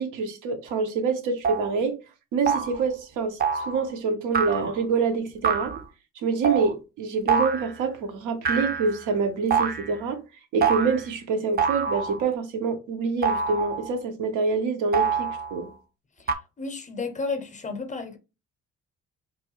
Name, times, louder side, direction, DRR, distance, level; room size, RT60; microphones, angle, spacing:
voice 1, 0.0-2.0 2.3-5.7 6.2-10.2 10.5-15.7, right 4 dB, 90° right, 0.7 m, -26 dB
sound 1, 0.7-0.8 1.4-1.7 2.5-2.8 3.4-3.8 4.3-4.8 5.4-5.8 6.4-6.7 7.3-7.8 8.5-9.1 9.5-10.0 10.6-11.1 11.6-12.3 13.2-13.9 14.9-15.6 16.3-16.4, right 6 dB, 35° right, 0.4 m, -26 dB
voice 2, 16.2-18.2, left 4 dB, 25° left, 0.5 m, -33 dB
3.0 x 2.2 x 2.9 m
cardioid pair, 90°, 30 cm